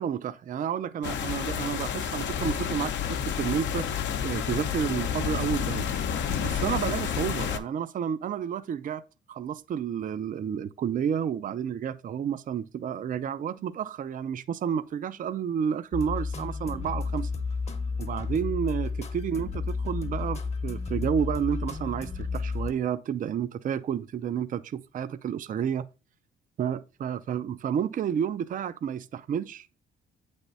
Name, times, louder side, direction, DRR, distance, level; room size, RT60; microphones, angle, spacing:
voice 1, 0.0-3.9 4.2-5.9 6.4-9.0 9.3-17.3 18.0-25.9 26.6-29.8, right 8 dB, 45° right, 0.4 m, -30 dB
sound 1, 1.0-7.6, left 8 dB, 65° left, 0.7 m, -30 dB
sound 2, 15.9-22.7, left 4 dB, 30° left, 0.8 m, -32 dB
8.1 x 3.4 x 4.0 m
cardioid pair, 90°, 20 cm